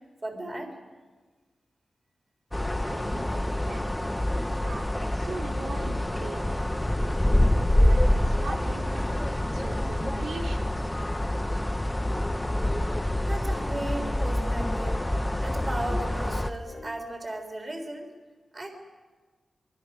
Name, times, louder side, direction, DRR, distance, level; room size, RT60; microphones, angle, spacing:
voice 1, 0.2-0.8 12.2-12.3 13.2-15.0 15.4-18.1 18.5-18.7, right 1 dB, 25° right, 4 dB, 3.7 m, -36 dB
sound 1, 2.5-16.5, left 1 dB, 10° left, 0.8 m, -26 dB
voice 2, 2.8-3.4 3.7-4.3 4.5-7.1 7.7-9.2 9.5-10.7, right 3 dB, 85° right, 1 dB, 2.6 m, -40 dB
sound 2, 12.2-12.6 12.9-13.2 13.5-13.9 14.1-14.4 14.7-15.7 16.0-17.0, left 3 dB, 60° left, 4.4 m, -46 dB
26.0 x 23.5 x 6.1 m, 1.4 s
wide cardioid pair, 180°, 0 cm